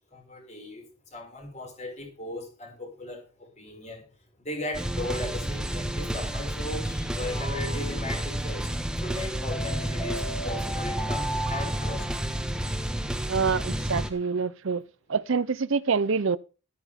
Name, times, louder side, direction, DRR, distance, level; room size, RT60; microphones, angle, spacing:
voice 1, 0.1-0.8 1.1-4.1 4.4-12.1, left 1 dB, 30° left, 5.6 m, -37 dB
sound 1, 4.7-14.1, right 1 dB, 5° right, 1.3 m, -30 dB
sound 2, 7.3-8.4 9.5-12.7, right 1 dB, 15° left, 3.8 m, -37 dB
voice 2, 13.3-14.8 15.1-16.4, right 5 dB, 60° right, 0.6 m, -26 dB
13.5 x 13.0 x 3.6 m
head